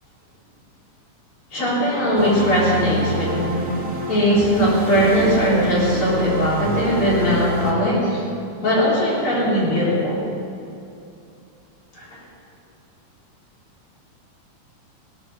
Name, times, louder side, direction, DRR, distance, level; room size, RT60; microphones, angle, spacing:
voice 1, 1.5-3.7 4.1-8.2 8.6-10.2 11.9-12.2, equal, 40° left, -6 dB, 4.1 m, -19 dB
sound 1, 2.2-7.7, right 1 dB, 35° right, 1.4 m, -28 dB
17.0 x 12.0 x 6.7 m, 2.5 s
omnidirectional pair, 3.8 m